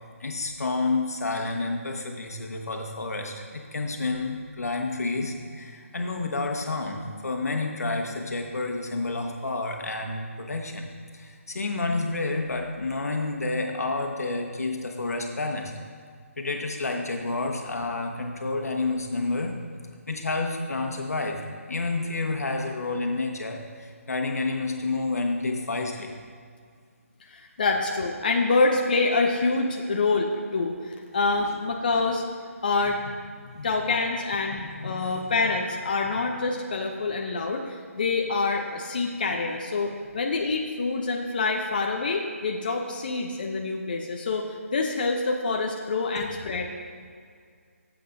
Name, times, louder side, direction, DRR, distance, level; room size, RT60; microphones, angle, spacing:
voice 1, 0.2-10.9 11.1-15.7 16.4-19.6 20.1-26.1 31.4-31.6 33.0-33.1 33.4-33.7 34.6-35.6, left 3 dB, 85° left, 3 dB, 1.4 m, -30 dB
voice 2, 27.3-32.2 32.6-33.0 33.6-46.6, left 3 dB, 35° left, 1 dB, 0.7 m, -26 dB
15.0 x 7.7 x 2.7 m, 2.1 s
hypercardioid pair, 175°, 8 cm